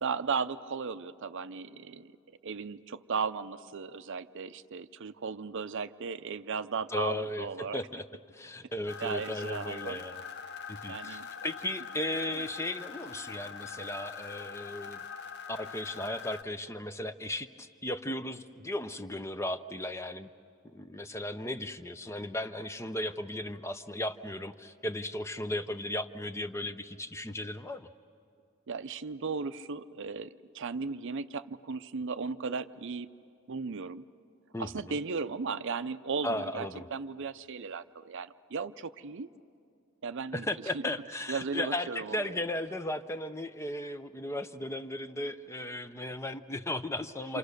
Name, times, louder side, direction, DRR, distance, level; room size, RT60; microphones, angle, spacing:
voice 1, 0.0-2.1 2.4-7.8 9.0-10.0 10.9-11.5 12.3-12.4 28.7-33.1 33.5-34.0 34.6-39.3 40.0-40.5 40.7-40.8 41.3-42.4, right 5 dB, 60° right, 13 dB, 0.6 m, -36 dB
voice 2, 6.9-8.0 8.3-10.2 10.7-15.0 15.5-20.3 20.7-27.9 34.5-35.0 36.2-36.9 40.3-47.4, left 1 dB, 10° left, 11 dB, 0.6 m, -36 dB
sound 1, 8.9-16.4, left 6 dB, 50° left, 1.0 m, -43 dB
28.0 x 27.0 x 6.7 m, 2.3 s
head